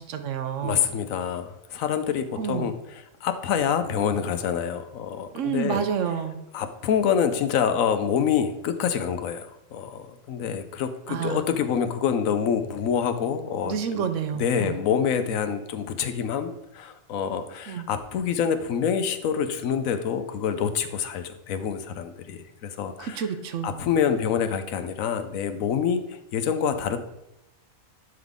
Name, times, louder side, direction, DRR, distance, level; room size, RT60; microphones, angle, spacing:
voice 1, 0.0-0.8 2.4-2.7 5.3-6.4 11.1-11.4 13.6-14.8 17.7-17.9 23.0-23.8, right 7 dB, 70° right, 9 dB, 0.9 m, -29 dB
voice 2, 0.6-5.8 6.5-14.1 14.3-23.2 23.6-27.0, left 7 dB, 75° left, 10 dB, 1.0 m, -26 dB
11.0 x 3.8 x 3.6 m, 0.89 s
omnidirectional pair, 1.4 m